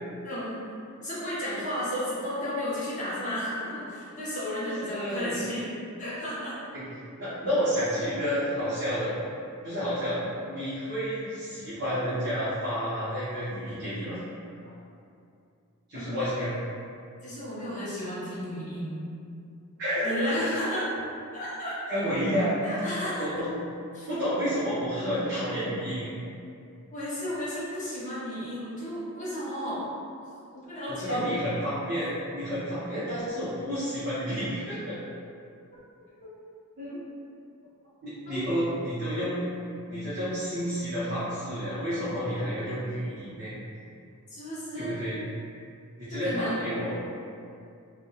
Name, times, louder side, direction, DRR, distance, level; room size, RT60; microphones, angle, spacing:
voice 1, 0.2-0.6 1.0-5.7 6.0-6.6 15.9-16.2 17.2-19.0 20.0-20.9 21.3-22.0 22.6-23.3 23.9-24.1 26.9-29.8 30.5-31.3 38.3-38.5 44.3-45.0 46.1-46.7, equal, 35° left, -9 dB, 0.7 m, -33 dB
voice 2, 4.9-5.4 6.7-6.8 7.2-9.1 9.6-14.2 15.9-16.5 19.8-20.3 21.9-23.5 24.1-26.1 30.9-35.0 36.8-37.1 38.0-39.5 39.9-43.5 44.7-45.2 46.0-47.0, equal, 55° right, -12 dB, 0.6 m, -30 dB
2.9 x 2.0 x 2.2 m, 2.5 s
head